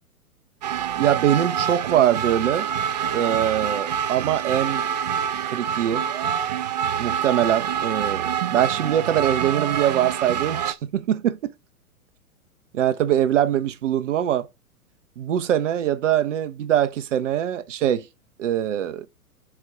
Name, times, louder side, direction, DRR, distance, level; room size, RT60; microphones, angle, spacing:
sound 1, 0.6-10.7, right 8 dB, 30° right, 0.4 m, -26 dB
voice 1, 1.0-2.7 3.1-4.8 5.5-6.0 7.0-11.5 12.7-14.5 15.2-18.1 18.4-19.1, right 11 dB, 55° right, 0.9 m, -23 dB
4.6 x 4.4 x 4.7 m
figure-of-eight pair, 110°, 44 cm